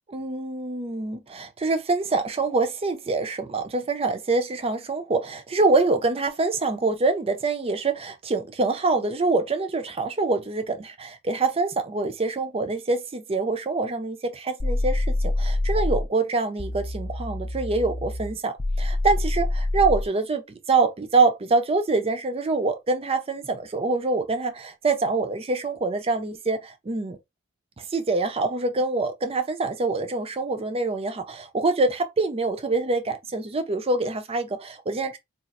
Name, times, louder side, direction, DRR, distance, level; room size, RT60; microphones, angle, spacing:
voice 1, 0.1-20.4 20.7-27.2 27.8-35.2, right 3 dB, 30° right, 0.5 m, -25 dB
sound 1, 14.6-16.1 16.6-20.1, left 2 dB, 25° left, 0.4 m, -26 dB
4.0 x 2.4 x 2.4 m
head